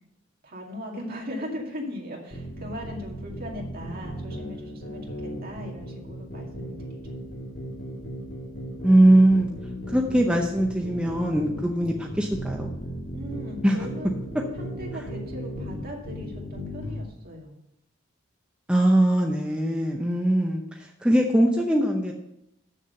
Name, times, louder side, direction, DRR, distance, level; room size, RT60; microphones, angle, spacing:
voice 1, 0.4-7.0 13.1-14.1 14.6-17.5, equal, 45° right, -1 dB, 2.2 m, -38 dB
sound 1, 2.3-17.0, equal, 85° left, 2.3 m, -36 dB
voice 2, 8.8-9.5 9.9-12.7 13.6-13.8 18.7-22.1, right 1 dB, 5° right, 0 dB, 0.7 m, -21 dB
7.4 x 6.6 x 6.4 m, 0.83 s
head